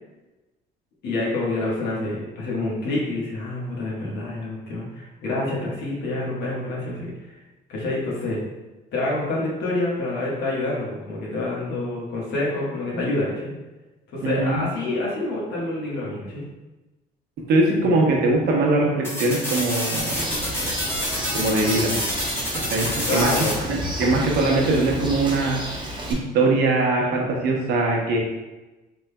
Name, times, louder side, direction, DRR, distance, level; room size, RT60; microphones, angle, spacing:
voice 1, 1.0-7.4 7.7-8.4 8.9-13.5 14.1-16.5 17.8-17.9 23.1-23.7, left 2 dB, 75° left, -5 dB, 1.3 m, -27 dB
voice 2, 14.2-14.6 17.5-20.3 21.3-22.0 22.6-23.3 23.7-28.2, right 2 dB, 70° right, -1 dB, 0.9 m, -22 dB
sound 1, 19.0-23.5, equal, 15° left, 1.0 m, -27 dB
Bird, 20.1-26.1, equal, 25° right, 0.8 m, -32 dB
3.8 x 3.4 x 2.2 m, 1.1 s
cardioid pair, 110°, 17 cm